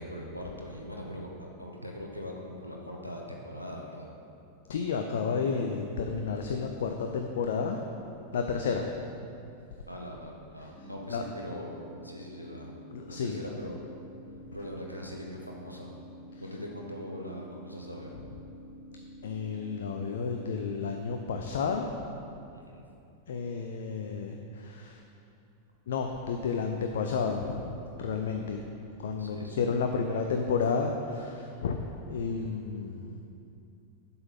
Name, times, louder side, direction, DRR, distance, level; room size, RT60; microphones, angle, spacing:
voice 1, 0.0-4.1 9.9-12.7 13.1-13.8 14.5-16.0 16.4-18.1 22.5-22.8 29.2-29.6 31.5-31.8, equal, 90° left, -1 dB, 0.8 m, -41 dB
voice 2, 4.7-7.8 8.3-8.9 11.1-11.2 12.9-13.4 19.2-21.9 23.3-25.0 25.9-27.7 28.0-28.6 29.0-33.2, left 5 dB, 60° left, 4 dB, 0.5 m, -31 dB
sound 1, 10.8-20.8, equal, 25° left, 0.9 m, -49 dB
7.7 x 5.7 x 5.6 m, 2.7 s
figure-of-eight pair, 90°, 0 cm